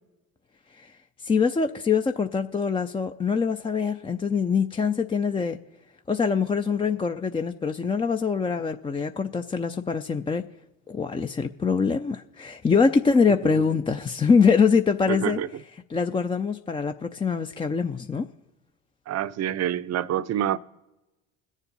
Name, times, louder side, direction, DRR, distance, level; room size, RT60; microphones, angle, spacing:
voice 1, 1.2-5.6 6.1-10.4 10.9-15.4 15.9-18.3, left 5 dB, 15° left, 0.4 m, -24 dB
voice 2, 13.4-13.8 15.1-15.5 19.1-20.6, right 11 dB, 35° right, 0.6 m, -27 dB
22.0 x 7.3 x 4.0 m
hypercardioid pair, 65°, 45 cm